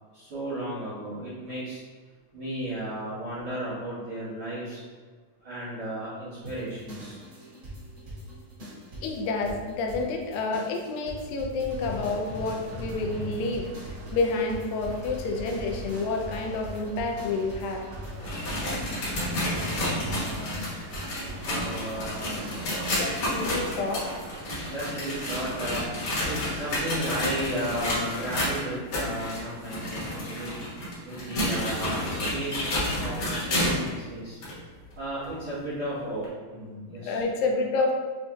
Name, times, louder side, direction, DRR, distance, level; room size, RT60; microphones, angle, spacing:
voice 1, 0.1-1.8 2.3-4.8 5.4-7.2 20.1-20.7 21.4-22.3 22.6-22.9 24.6-25.9 26.3-30.5 31.0-32.1 32.3-32.6 33.0-34.4 35.0-37.2, right 1 dB, 60° right, -13 dB, 1.5 m, -34 dB
sound 1, 6.4-22.6, equal, 45° right, 1.6 m, -40 dB
voice 2, 9.0-17.8 23.0-24.1 37.1-37.9, left 3 dB, 80° left, 2 dB, 2.1 m, -29 dB
sound 2, 11.7-26.8, right 4 dB, 80° right, 2.9 m, -45 dB
sound 3, 18.0-33.9 34.4-34.5 35.2-35.3 36.2-36.3, left 1 dB, 60° left, 1.7 m, -30 dB
6.5 x 2.7 x 2.2 m, 1.5 s
omnidirectional pair, 4.2 m